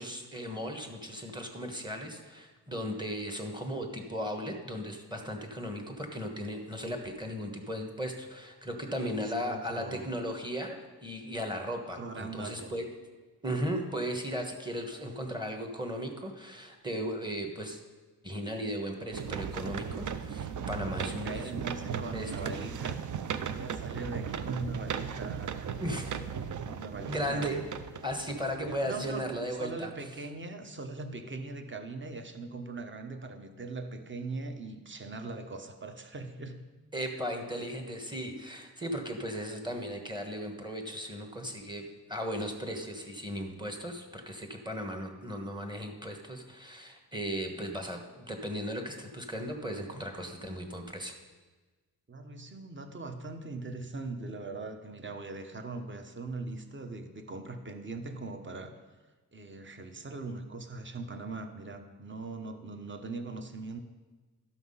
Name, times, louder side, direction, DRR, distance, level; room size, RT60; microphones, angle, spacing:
voice 1, 0.0-10.7 11.0-12.9 13.4-17.8 18.2-21.4 21.9-22.5 25.8-26.2 27.1-27.6 28.0-29.9 36.9-41.8 42.1-51.2, equal, 10° right, 3 dB, 1.2 m, -36 dB
voice 2, 9.4-10.1 11.9-12.7 20.9-26.3 26.6-27.5 28.6-36.6 52.1-58.7 59.3-63.8, right 3 dB, 30° right, 6 dB, 1.0 m, -41 dB
sound 1, 19.1-29.4 30.0-30.1, right 7 dB, 55° right, 0.6 m, -37 dB
12.5 x 5.9 x 5.6 m, 1.3 s
wide cardioid pair, 125°, 37 cm